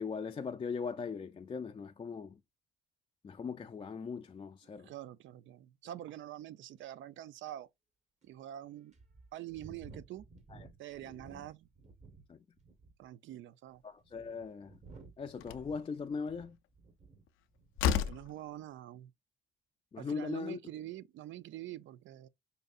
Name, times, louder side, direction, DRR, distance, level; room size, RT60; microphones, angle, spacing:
voice 1, 0.0-2.4 3.2-4.9 10.5-10.7 11.1-11.2 12.3-12.4 13.8-14.8 15.2-16.6 19.9-20.6, left 5 dB, 25° left, 0.4 m, -39 dB
voice 2, 4.8-7.7 8.2-8.9 9.3-10.2 10.8-11.7 13.0-13.8 18.1-19.1 20.0-22.3, right 13 dB, 75° right, 0.4 m, -45 dB
sound 1, 6.8-6.9 7.5-7.6 8.2-8.3 8.9-12.3 12.6-13.1 13.8-17.3 17.5-17.9, right 3 dB, 35° right, 1.2 m, -55 dB
Slam, 14.7-14.8 15.4-15.7 17.3-17.4 17.8-18.3, left 8 dB, 85° left, 0.4 m, -31 dB
5.2 x 2.7 x 2.4 m
cardioid pair, 90°, 20 cm